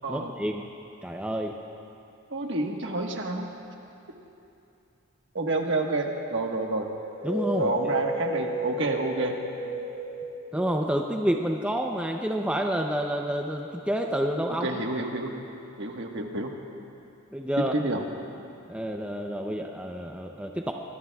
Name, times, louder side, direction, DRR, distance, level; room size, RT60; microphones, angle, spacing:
voice 1, 0.1-0.6 1.0-1.5 7.2-7.9 10.5-14.8 17.3-17.7 18.7-20.7, equal, 5° right, 2 dB, 0.5 m, -29 dB
voice 2, 2.3-3.5 5.3-6.9 7.6-9.3 14.6-15.3 15.8-16.5 17.7-18.0, right 2 dB, 55° right, 2 dB, 1.4 m, -29 dB
sound 1, 7.0-11.6, equal, 35° right, 2.9 m, -33 dB
24.5 x 20.5 x 2.3 m, 2.7 s
head